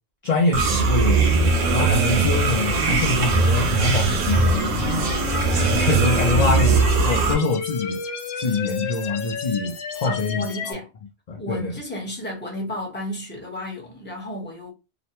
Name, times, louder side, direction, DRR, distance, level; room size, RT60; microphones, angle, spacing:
voice 1, 0.2-1.2 1.7-5.1 5.7-8.0 8.3-10.7 11.3-11.7, left 3 dB, 55° left, 0.5 m, -24 dB
sound 1, 0.5-7.3, right 3 dB, 85° right, 1.1 m, -20 dB
sound 2, 2.7-10.7, left 6 dB, 90° left, 1.0 m, -33 dB
voice 2, 10.0-10.9 11.4-14.7, left 1 dB, 10° left, 0.9 m, -33 dB
3.0 x 2.1 x 2.8 m
omnidirectional pair, 1.3 m